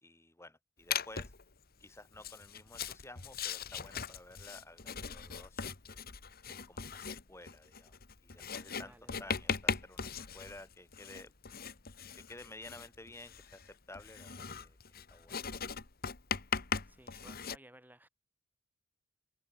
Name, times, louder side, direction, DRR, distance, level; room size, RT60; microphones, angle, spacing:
voice 1, 0.0-1.3 1.8-6.0 6.5-11.3 12.2-14.8 15.1-15.4, left 2 dB, 15° left, 3.9 m, -53 dB
Writing, 0.9-1.4 2.1-17.6, left 6 dB, 50° left, 1.9 m, -39 dB
voice 2, 8.8-9.4 16.8-18.1, right 1 dB, 10° right, 6.0 m, -58 dB
open air
head